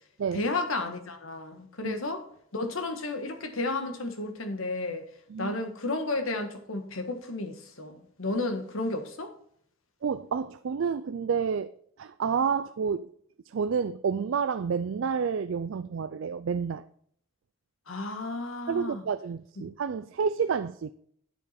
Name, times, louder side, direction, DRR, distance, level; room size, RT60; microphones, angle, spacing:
voice 1, 0.3-2.3 2.5-5.0 5.4-9.3 17.9-19.0, left 2 dB, 75° left, 1.5 m, -32 dB
voice 2, 10.0-11.7 12.0-13.1 13.5-16.8 18.7-20.9, right 6 dB, 65° right, 0.4 m, -29 dB
9.1 x 7.9 x 4.3 m
head